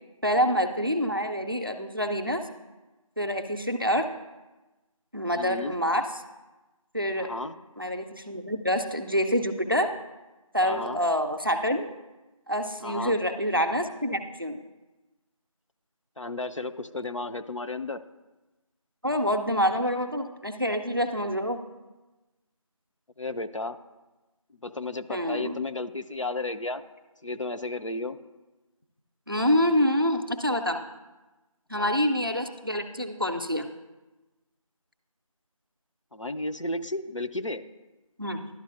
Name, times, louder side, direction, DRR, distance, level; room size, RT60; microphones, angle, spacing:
voice 1, 0.2-2.4 3.2-4.1 5.1-6.0 6.9-7.3 7.8-10.0 10.5-11.9 12.5-14.6 19.0-21.6 25.1-25.6 29.3-30.8 31.7-33.7 38.2-38.5, equal, 40° right, 7 dB, 0.4 m, -26 dB
voice 2, 5.3-5.8 7.2-7.5 10.6-11.0 12.8-13.1 16.2-18.0 23.2-23.8 24.6-26.8 27.2-28.2 31.7-31.9 36.1-37.7, left 2 dB, 60° left, 9 dB, 0.4 m, -33 dB
12.0 x 4.3 x 2.5 m, 1.1 s
figure-of-eight pair, 180°, 18 cm